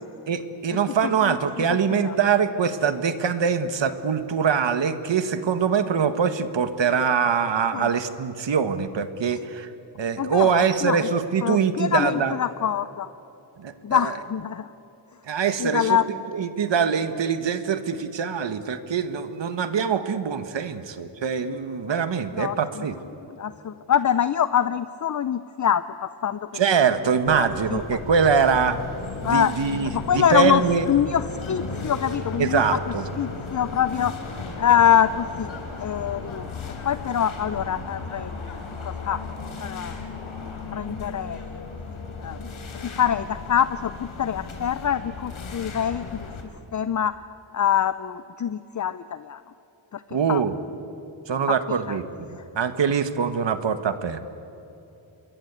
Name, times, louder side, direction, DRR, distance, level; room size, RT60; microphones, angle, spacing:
voice 1, 0.3-9.7 10.0-12.3 13.6-14.1 15.3-16.0 16.3-22.9 26.5-28.8 29.2-30.9 32.4-33.0 50.1-50.5 51.3-54.2, right 6 dB, 65° right, 10 dB, 1.5 m, -23 dB
voice 2, 1.0-1.4 2.0-2.1 7.7-7.9 10.2-11.1 11.4-13.1 13.8-14.7 15.6-16.1 22.3-22.6 23.4-26.4 27.3-28.0 29.2-29.5 29.9-30.6 30.9-32.6 33.2-34.1 34.6-35.5 35.8-36.5 36.8-38.5 38.8-39.2 39.6-40.0 40.7-41.4 42.2-42.4 43.0-46.3 46.7-47.1 47.5-49.4 49.9-50.0 50.3-50.4 51.9-52.0, left 9 dB, 40° left, 13 dB, 0.6 m, -24 dB
sound 1, 27.2-46.4, left 4 dB, 85° left, 3.6 m, -35 dB
27.5 x 22.0 x 8.2 m, 2.9 s
wide cardioid pair, 135°, 47 cm